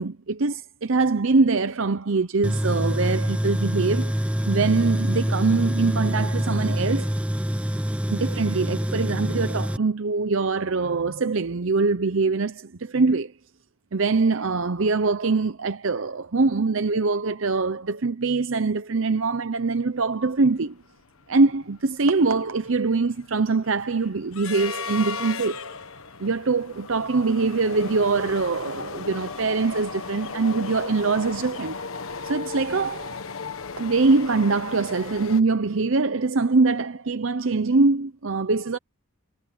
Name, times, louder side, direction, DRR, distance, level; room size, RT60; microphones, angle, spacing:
voice 1, 0.0-7.1 8.1-13.3 13.9-20.8 21.3-25.7 26.2-31.8 32.2-33.2 33.8-38.8, right 3 dB, 60° right, 0.7 m, -23 dB
Tools, 2.4-9.8, equal, 5° right, 0.9 m, -25 dB
sound 1, 20.0-20.1 20.4-20.6 21.0-35.4, left 4 dB, 70° left, 1.3 m, -36 dB
head